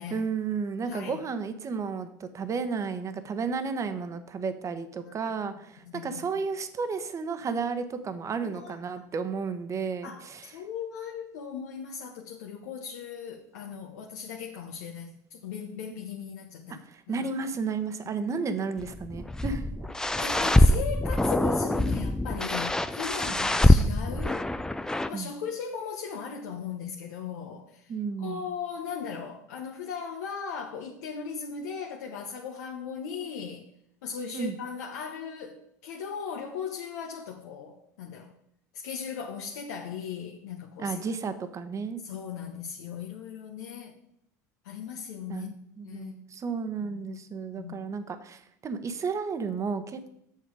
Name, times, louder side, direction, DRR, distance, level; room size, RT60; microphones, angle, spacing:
voice 1, 0.1-10.5 15.9-16.0 16.9-19.7 25.1-25.3 27.9-28.4 34.3-34.6 40.8-42.0 45.3-50.1, right 5 dB, 35° right, 10 dB, 1.1 m, -33 dB
voice 2, 0.8-1.2 5.0-5.3 5.9-6.1 8.4-8.7 10.0-17.3 18.2-18.3 20.2-24.4 24.8-27.9 28.2-33.7 34.0-38.3 38.7-41.1 42.0-43.9 44.6-45.5 45.8-46.1 46.8-47.2 47.6-47.8, left 6 dB, 80° left, 0 dB, 1.0 m, -38 dB
sound 1, 18.8-25.1, left 1 dB, 5° left, 0.5 m, -24 dB
7.7 x 6.6 x 4.7 m, 0.72 s
hypercardioid pair, 85°, 9 cm